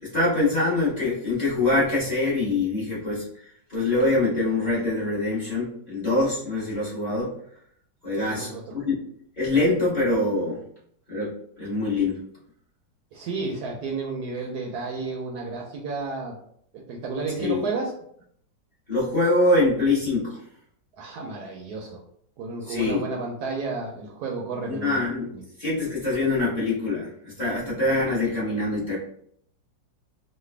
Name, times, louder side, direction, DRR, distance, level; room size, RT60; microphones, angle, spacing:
voice 1, 0.0-3.2 3.7-7.4 8.0-8.9 9.4-10.6 11.1-12.2 17.4-17.7 18.9-20.4 22.7-23.0 24.7-25.3 25.6-27.1 27.4-29.0, left 2 dB, 30° left, -9 dB, 1.0 m, -24 dB
voice 2, 8.2-8.7 13.1-16.4 16.9-17.9 21.0-22.0 22.4-25.0 25.3-25.4, right 3 dB, 70° right, 0 dB, 1.0 m, -32 dB
3.2 x 2.2 x 3.2 m, 0.66 s
omnidirectional pair, 1.9 m